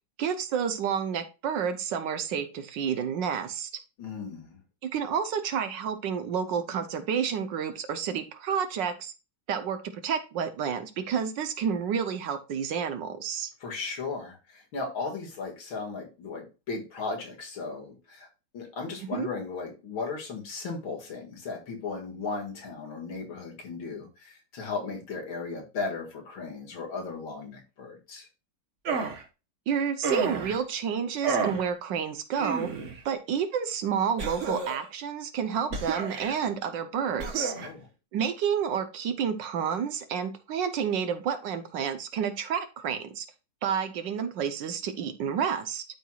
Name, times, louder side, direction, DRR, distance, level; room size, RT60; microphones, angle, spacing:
voice 1, 0.2-3.7 4.8-9.1 9.5-13.5 19.0-19.3 29.7-32.7 33.0-37.5 38.1-43.3 43.6-45.8, right 7 dB, 70° right, 9 dB, 1.4 m, -30 dB
voice 2, 4.0-4.6 13.6-18.3 18.5-28.3 37.5-37.8, left 4 dB, 75° left, 0 dB, 2.7 m, -36 dB
sound 1, 28.8-29.2 30.0-30.6 31.2-31.6 32.4-33.0 34.2-34.9 35.7-36.4 37.2-37.7, right 4 dB, 45° right, 1.2 m, -31 dB
12.0 x 4.6 x 2.3 m, 0.29 s
omnidirectional pair, 2.2 m